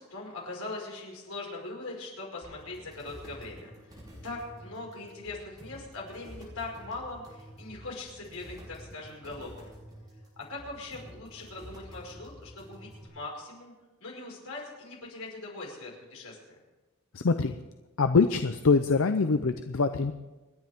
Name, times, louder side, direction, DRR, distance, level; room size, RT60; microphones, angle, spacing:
voice 1, 0.0-9.7 10.4-13.7 14.0-16.6, left 2 dB, 85° left, -2 dB, 5.3 m, -41 dB
sound 1, 2.4-13.1, equal, 20° right, 5.6 m, -49 dB
voice 2, 17.1-17.6 18.0-20.1, left 4 dB, 65° left, 9 dB, 0.6 m, -24 dB
28.0 x 10.5 x 3.6 m, 1.1 s
head